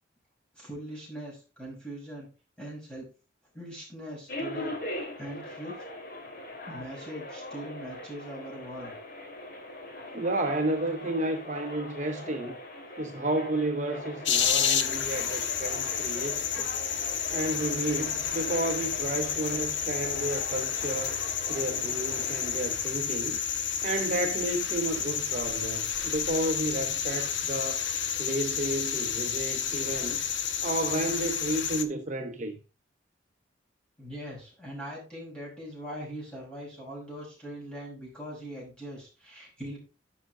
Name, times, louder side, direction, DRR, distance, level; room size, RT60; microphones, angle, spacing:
voice 1, 0.5-2.3 2.6-3.1 3.5-5.8 6.7-8.9 34.0-39.8, equal, 5° left, 5.8 m, -41 dB
sound 1, 4.3-22.8, left 1 dB, 50° left, 2.3 m, -41 dB
voice 2, 10.1-12.6 13.0-16.7 17.3-21.2 21.5-23.4 23.8-27.8 28.2-30.2 30.6-32.5, right 1 dB, 40° right, 0.9 m, -31 dB
sound 2, 14.2-31.8, left 8 dB, 70° left, 1.0 m, -30 dB
11.0 x 6.4 x 3.8 m
head